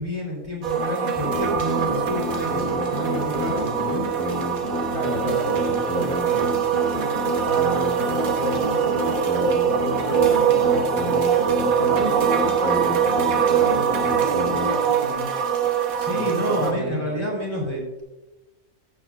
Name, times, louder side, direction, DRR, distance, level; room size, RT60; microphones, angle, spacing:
voice 1, 0.0-4.1 15.9-18.0, equal, 20° right, -2 dB, 3.7 m, -29 dB
sound 1, 0.6-16.7, right 7 dB, 90° right, 1.6 m, -23 dB
sound 2, 1.3-14.7, equal, 50° right, 2.4 m, -29 dB
voice 2, 4.9-6.6 7.5-11.2 11.5-15.3 16.1-16.3 16.6-17.2, right 1 dB, 75° right, 0 dB, 2.2 m, -32 dB
15.0 x 9.2 x 2.5 m, 1.0 s
omnidirectional pair, 1.4 m